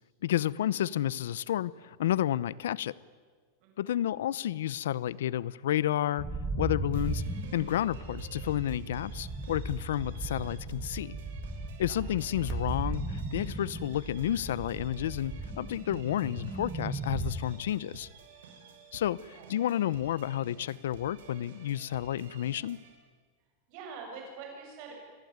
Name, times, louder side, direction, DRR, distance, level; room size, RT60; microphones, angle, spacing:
voice 1, 0.2-3.0 3.8-6.3 6.6-7.2 7.5-11.2 11.8-18.1 18.9-22.8, left 12 dB, 90° left, 21 dB, 0.8 m, -31 dB
voice 2, 3.6-4.0 11.9-12.0 19.3-19.5 23.7-25.0, right 5 dB, 40° right, 1 dB, 7.6 m, -45 dB
sound 1, 6.2-17.3, right 2 dB, 10° right, 2.0 m, -37 dB
sound 2, 6.9-22.9, right 6 dB, 80° right, 6.4 m, -53 dB
27.0 x 21.0 x 9.6 m, 1.5 s
supercardioid pair, 175°, 0 cm